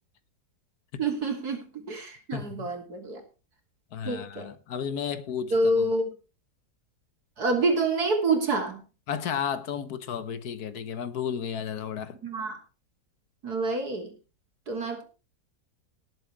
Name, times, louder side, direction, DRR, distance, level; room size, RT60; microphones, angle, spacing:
voice 1, 1.0-3.2 4.1-4.5 5.5-6.1 7.4-8.8 12.2-12.6 13.4-14.1 14.7-15.0, right 2 dB, 75° right, 3.6 m, -27 dB
voice 2, 2.3-2.7 3.9-5.9 9.1-12.2, left 8 dB, 75° left, 1.5 m, -33 dB
18.5 x 7.8 x 4.8 m
omnidirectional pair, 1.7 m